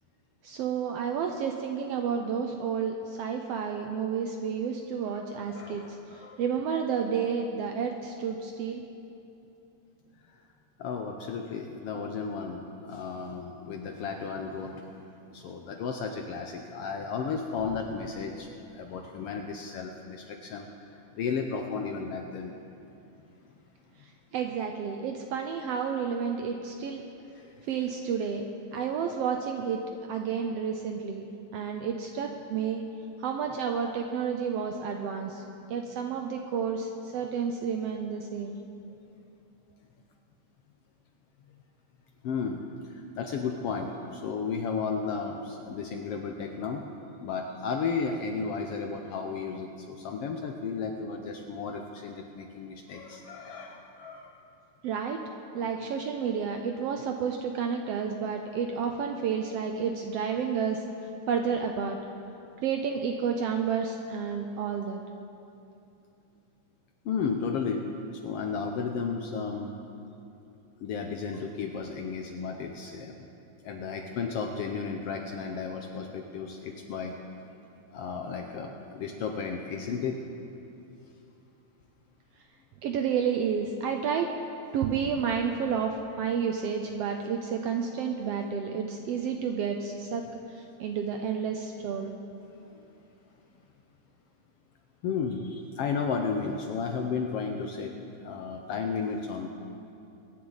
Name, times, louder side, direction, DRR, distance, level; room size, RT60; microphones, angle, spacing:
voice 1, 0.4-5.8 6.4-8.8 24.3-27.0 27.7-28.4 28.7-29.8 30.1-31.3 31.5-32.8 33.2-35.4 35.7-38.6 54.8-55.2 55.5-60.8 61.3-62.0 62.6-65.0 82.8-84.3 84.7-90.2 90.8-92.1, right 6 dB, 75° right, 4 dB, 1.5 m, -30 dB
voice 2, 5.5-6.4 10.8-20.7 21.1-22.5 27.4-27.7 42.2-46.8 47.2-54.3 67.0-67.9 68.2-69.7 70.8-73.3 73.6-77.1 77.9-80.2 95.0-97.9 98.2-99.5, left 5 dB, 70° left, 3 dB, 1.4 m, -33 dB
23.5 x 10.5 x 4.0 m, 2.7 s
omnidirectional pair, 3.4 m